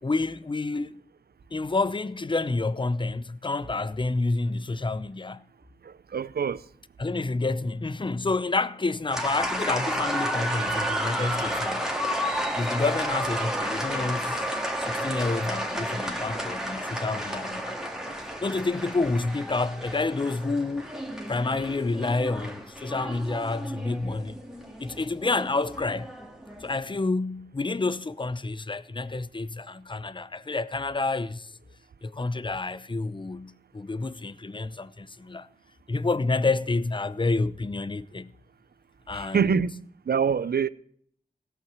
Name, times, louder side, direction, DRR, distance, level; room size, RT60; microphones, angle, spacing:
voice 1, 0.0-1.0 1.5-5.4 7.0-11.9 12.5-17.9 18.4-24.4 24.8-26.1 26.6-31.5 32.0-35.5 35.9-38.3 39.1-39.7, left 3 dB, 30° left, 0.6 m, -29 dB
voice 2, 5.8-6.6 39.1-39.7 40.1-40.7, right 6 dB, 75° right, 0.5 m, -25 dB
sound 1, 9.1-26.8, equal, 5° right, 2.1 m, -32 dB
17.0 x 5.9 x 7.4 m
wide cardioid pair, 55°, 16 cm